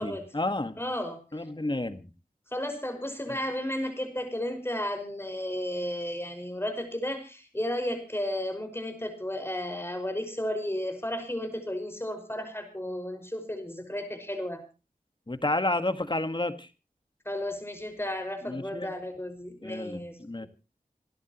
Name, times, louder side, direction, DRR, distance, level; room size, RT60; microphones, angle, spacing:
voice 1, 0.0-0.8 1.3-2.1 15.3-16.7 18.4-18.9 19.6-20.5, left 2 dB, 30° left, 9 dB, 1.7 m, -31 dB
voice 2, 0.8-1.2 2.5-14.6 17.3-20.5, left 1 dB, 15° left, 7 dB, 5.6 m, -33 dB
28.0 x 11.0 x 3.1 m, 0.31 s
wide cardioid pair, 45°, 15 cm